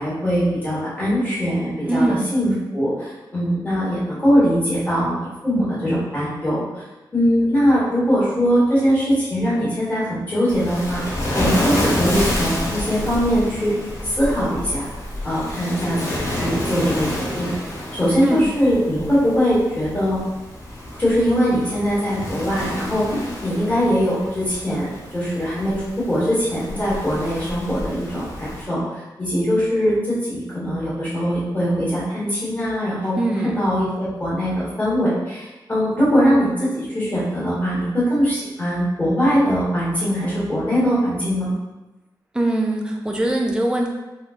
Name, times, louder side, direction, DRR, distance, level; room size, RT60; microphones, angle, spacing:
voice 1, 0.0-6.8 7.1-11.0 11.3-13.7 14.0-14.9 15.2-17.5 17.9-20.2 21.0-23.0 23.4-28.8 29.2-33.1 33.4-41.5, equal, 20° left, -9 dB, 1.4 m, -21 dB
voice 2, 1.8-2.2 18.2-18.4 33.2-33.6 42.3-43.9, right 1 dB, 10° right, 0 dB, 0.4 m, -21 dB
Waves surf, 10.5-28.6, left 1 dB, 40° left, 0.8 m, -29 dB
3.7 x 2.1 x 3.5 m, 1.1 s
wide cardioid pair, 175°, 8 cm